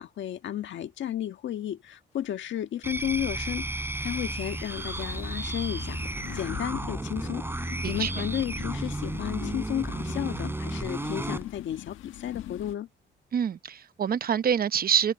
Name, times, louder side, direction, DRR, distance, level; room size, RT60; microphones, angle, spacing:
voice 1, 0.0-6.0 6.3-12.9, left 11 dB, 70° left, 1.5 m, -33 dB
sound 1, 2.8-11.5, right 1 dB, 10° right, 7.4 m, -33 dB
sound 2, 3.9-12.7, left 14 dB, 90° left, 1.4 m, -42 dB
voice 2, 13.3-15.1, right 8 dB, 50° right, 0.9 m, -26 dB
cardioid pair, 90°, 20 cm